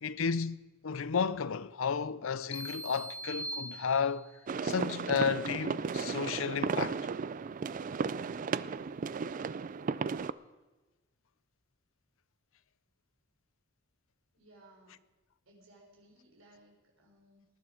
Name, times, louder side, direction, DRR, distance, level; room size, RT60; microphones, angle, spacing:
voice 1, 0.0-4.3 4.6-7.0, left 6 dB, 80° left, 0.6 m, -32 dB
sound 1, 2.5-4.4, right 1 dB, 30° left, 1.1 m, -41 dB
sound 2, 4.5-10.3, right 5 dB, 40° right, 0.4 m, -34 dB
voice 2, 14.4-15.1 15.4-17.5, right 1 dB, 85° right, 4.0 m, -61 dB
19.5 x 11.5 x 5.0 m
head